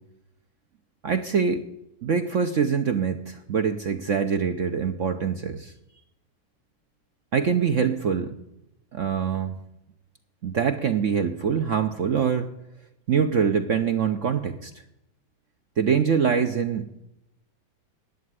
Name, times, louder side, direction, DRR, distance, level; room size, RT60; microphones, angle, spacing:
voice 1, 1.0-1.6 2.0-5.7 7.3-8.4 8.9-9.5 10.4-12.5 13.1-14.7 15.8-16.9, right 6 dB, 60° right, 7 dB, 0.8 m, -24 dB
11.0 x 8.5 x 9.4 m, 0.87 s
omnidirectional pair, 2.1 m